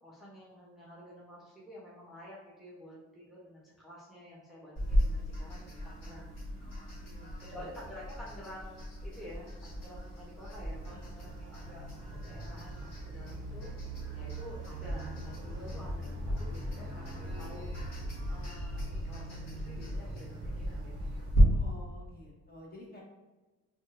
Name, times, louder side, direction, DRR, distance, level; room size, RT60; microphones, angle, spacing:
voice 1, 0.0-6.3 7.4-13.7 14.1-18.0 18.3-21.1, equal, ahead, -7 dB, 0.8 m, -50 dB
sound 1, 4.8-21.4, equal, 60° left, 1.4 m, -36 dB
voice 2, 6.5-7.7 10.9-11.0 21.5-23.0, left 1 dB, 30° left, -4 dB, 1.1 m, -52 dB
sound 2, 10.6-21.3, right 2 dB, 80° right, 0.5 m, -44 dB
3.6 x 2.3 x 2.5 m, 1.2 s
cardioid pair, 90°, 30 cm